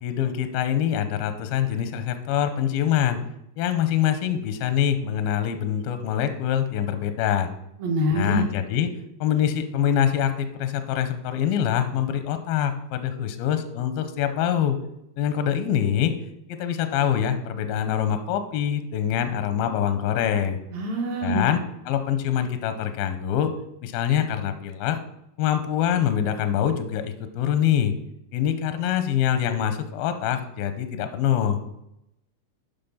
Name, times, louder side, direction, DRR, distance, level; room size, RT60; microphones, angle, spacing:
voice 1, 0.0-3.2 3.6-7.5 8.1-8.9 9.2-14.8 15.2-16.1 16.5-20.6 21.2-21.6 21.9-23.5 23.8-25.0 25.4-27.9 28.3-31.6, left 9 dB, 80° left, 9 dB, 2.1 m, -24 dB
voice 2, 7.8-8.4 20.7-21.4, equal, 65° right, -1 dB, 2.7 m, -24 dB
10.5 x 5.7 x 5.6 m, 0.82 s
omnidirectional pair, 5.1 m